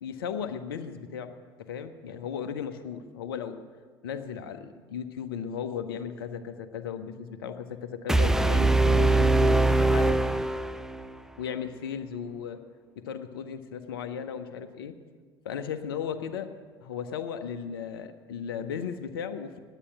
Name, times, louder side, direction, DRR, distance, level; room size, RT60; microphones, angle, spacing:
voice 1, 0.0-1.3 1.7-3.6 4.0-10.2 11.4-12.6 13.0-15.0 15.4-16.5 16.8-19.6, left 7 dB, 65° left, 9 dB, 0.7 m, -36 dB
sound 1, 8.1-11.2, right 2 dB, 5° right, 0.4 m, -22 dB
10.0 x 9.0 x 9.2 m, 1.5 s
figure-of-eight pair, 65°, 13 cm